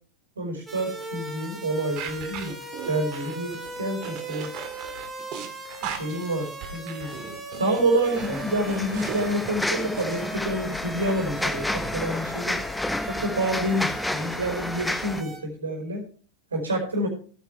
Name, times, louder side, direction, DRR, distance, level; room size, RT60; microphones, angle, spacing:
voice 1, 0.4-2.6 2.9-4.5 5.8-7.1 7.6-12.6 13.1-16.0 16.5-17.1, right 1 dB, 70° right, 1 dB, 4.7 m, -28 dB
sound 1, 0.7-15.4, right 2 dB, 10° right, 3.1 m, -39 dB
sound 2, 2.0-10.2, right 8 dB, 40° right, 2.1 m, -38 dB
sound 3, 8.1-15.2, left 1 dB, 5° left, 0.9 m, -31 dB
16.5 x 9.4 x 3.4 m, 0.40 s
figure-of-eight pair, 90°, 0 cm